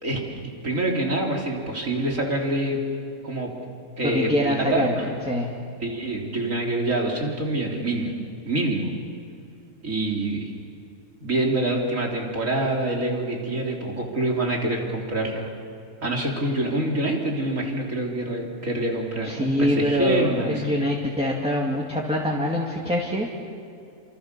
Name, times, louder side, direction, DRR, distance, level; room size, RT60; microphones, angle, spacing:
voice 1, 0.0-2.8 3.2-3.5 4.0-5.0 5.8-8.1 8.4-8.9 9.8-10.5 11.2-15.5 16.0-20.6, right 1 dB, 55° right, 0 dB, 4.3 m, -26 dB
voice 2, 4.0-5.5 19.2-23.3, left 1 dB, 5° right, -2 dB, 2.5 m, -24 dB
30.0 x 27.0 x 7.0 m, 2.5 s
omnidirectional pair, 1.6 m